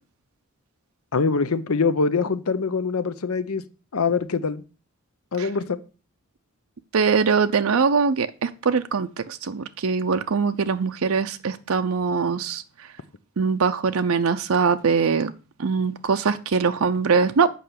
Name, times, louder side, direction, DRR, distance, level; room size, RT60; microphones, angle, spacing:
voice 1, 1.1-3.6 3.9-4.6 5.3-5.8, left 4 dB, 85° left, 0.7 m, -23 dB
voice 2, 6.9-12.6 13.4-15.3 15.6-17.5, right 5 dB, 80° right, 0.5 m, -22 dB
7.7 x 5.7 x 6.7 m
head